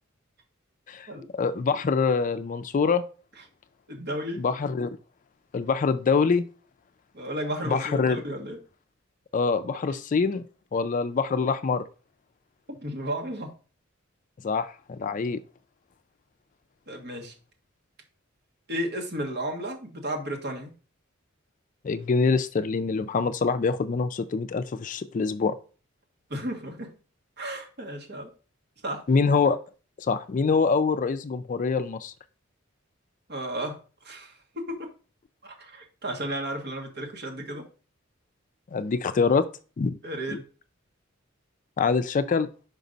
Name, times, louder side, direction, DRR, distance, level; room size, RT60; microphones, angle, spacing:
voice 1, 0.9-3.0 4.4-4.9 5.5-6.4 7.6-8.2 9.3-10.4 10.7-11.8 14.4-15.4 21.8-25.6 29.1-29.6 30.0-32.1 38.7-39.5 39.8-40.0 40.3-40.4 41.8-42.5, left 5 dB, 40° left, 12 dB, 0.4 m, -25 dB
voice 2, 3.9-4.4 7.1-8.6 12.8-13.5 16.9-17.3 18.7-20.7 26.3-26.9 27.4-28.3 28.8-29.0 33.3-33.8 34.0-34.3 34.6-34.9 35.4-37.6 40.0-40.4, right 1 dB, 55° right, 1 dB, 1.5 m, -33 dB
5.1 x 5.1 x 3.9 m, 0.37 s
head